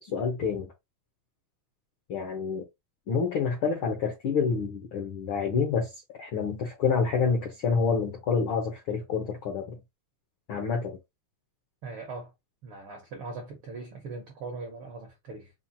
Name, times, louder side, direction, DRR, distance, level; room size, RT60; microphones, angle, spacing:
voice 1, 0.0-0.7 2.1-2.7 3.1-5.9 6.2-9.8 10.5-11.0, left 5 dB, 85° left, 1.1 m, -28 dB
voice 2, 11.8-12.3 12.6-15.5, right 3 dB, 75° right, 1.2 m, -40 dB
5.5 x 2.3 x 2.7 m
omnidirectional pair, 3.7 m